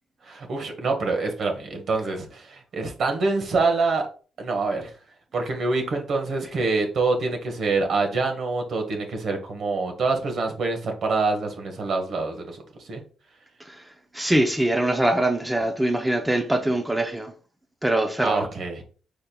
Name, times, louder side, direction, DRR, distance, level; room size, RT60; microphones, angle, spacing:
voice 1, 0.2-4.1 4.4-4.9 5.3-12.6 12.9-13.0 18.2-18.8, right 3 dB, 60° right, 1.2 m, -25 dB
voice 2, 13.6-17.3 17.8-18.5, right 1 dB, 10° right, 0.6 m, -23 dB
5.1 x 4.3 x 2.3 m
cardioid pair, 90°, 0 cm